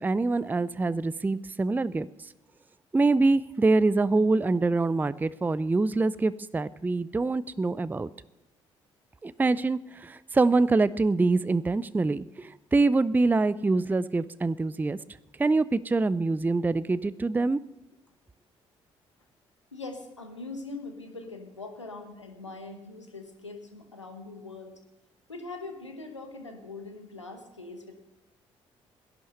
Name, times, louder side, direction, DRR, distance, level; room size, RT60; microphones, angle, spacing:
voice 1, 0.0-2.1 2.9-8.1 9.2-15.0 15.4-17.6, right 3 dB, 10° right, 17 dB, 0.4 m, -25 dB
voice 2, 19.7-24.8 25.3-27.9, left 3 dB, 90° left, 5 dB, 1.1 m, -42 dB
14.5 x 11.0 x 6.6 m, 0.97 s
figure-of-eight pair, 45°, 15 cm